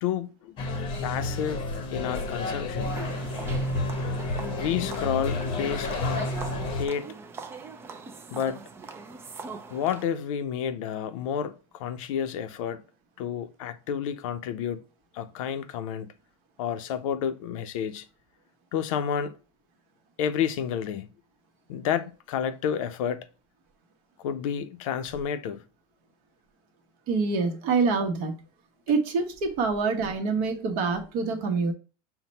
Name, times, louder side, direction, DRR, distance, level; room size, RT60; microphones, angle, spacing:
voice 1, 0.0-0.6 1.0-3.0 4.6-5.9 6.7-7.1 8.3-8.6 9.7-12.8 13.2-14.8 15.1-16.1 16.6-18.1 18.7-19.4 20.2-21.1 21.7-23.3 24.2-25.6, left 8 dB, 70° left, 0.6 m, -30 dB
sound 1, 0.6-6.9, left 2 dB, 30° left, 0.8 m, -30 dB
sound 2, 2.8-10.1, right 4 dB, 15° right, 0.4 m, -42 dB
voice 2, 27.1-28.3 28.9-31.7, right 4 dB, 50° right, 1.0 m, -26 dB
5.8 x 2.2 x 4.0 m
supercardioid pair, 155°, 18 cm